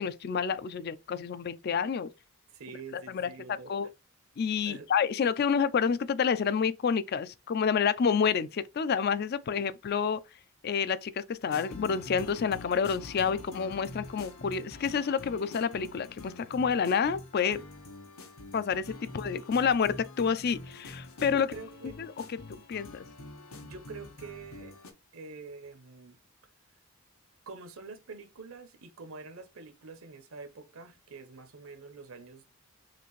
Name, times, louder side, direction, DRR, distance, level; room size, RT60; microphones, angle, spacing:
voice 1, 0.0-2.1 3.1-3.3 3.7-3.9 4.4-10.2 10.6-17.6 18.5-21.5 22.5-23.1, left 6 dB, 45° left, 0.3 m, -29 dB
voice 2, 2.5-3.7 4.7-4.9 9.4-9.7 19.0-19.1 21.3-22.0 23.6-24.8 25.1-26.2 27.5-32.5, right 4 dB, 75° right, 0.8 m, -46 dB
sound 1, 11.5-24.9, left 2 dB, 85° left, 1.0 m, -46 dB
5.8 x 2.5 x 3.1 m
head